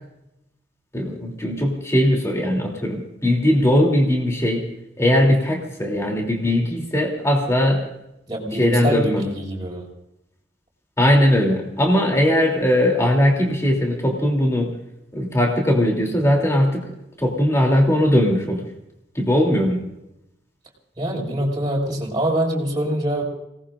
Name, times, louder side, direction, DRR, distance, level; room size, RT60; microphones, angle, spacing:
voice 1, 0.9-4.7 5.0-7.8 8.5-9.2 11.0-14.7 15.1-16.8 17.2-18.6 19.1-19.8, left 1 dB, 15° left, 0 dB, 3.1 m, -19 dB
voice 2, 8.3-9.8 21.0-23.2, right 1 dB, 25° right, -3 dB, 5.9 m, -24 dB
28.5 x 19.5 x 2.6 m, 0.85 s
head